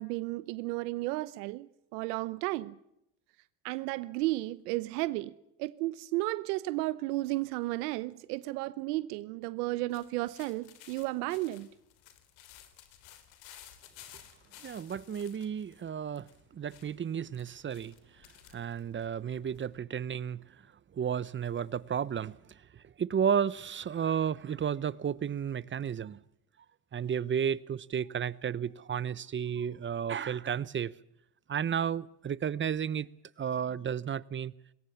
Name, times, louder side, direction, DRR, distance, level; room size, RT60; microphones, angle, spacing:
voice 1, 0.0-2.7 3.6-5.3 5.6-11.7, right 19 dB, 85° right, 0.9 m, -33 dB
sound 1, 9.9-19.8, left 11 dB, 75° left, 3.4 m, -56 dB
voice 2, 14.6-16.3 16.5-17.9 18.5-20.4 20.9-22.4 22.7-26.2 26.9-30.9 31.5-33.1 33.4-34.5, right 8 dB, 25° right, 0.7 m, -32 dB
21.0 x 18.5 x 7.1 m
supercardioid pair, 90°, 46 cm